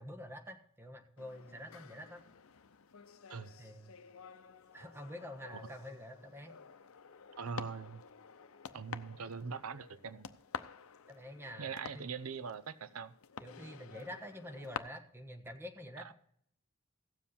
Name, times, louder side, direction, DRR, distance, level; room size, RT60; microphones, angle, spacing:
voice 1, 0.0-2.2 3.6-3.9 4.7-6.5 11.1-11.7 11.9-12.1 13.4-16.1, equal, 10° right, 5 dB, 1.2 m, -47 dB
sound 1, 1.2-14.8, left 6 dB, 75° left, 0.6 m, -50 dB
voice 2, 7.4-8.0 8.7-10.3 11.6-13.1 16.0-16.1, right 5 dB, 90° right, 14 dB, 0.6 m, -42 dB
16.5 x 7.4 x 4.3 m, 0.68 s
head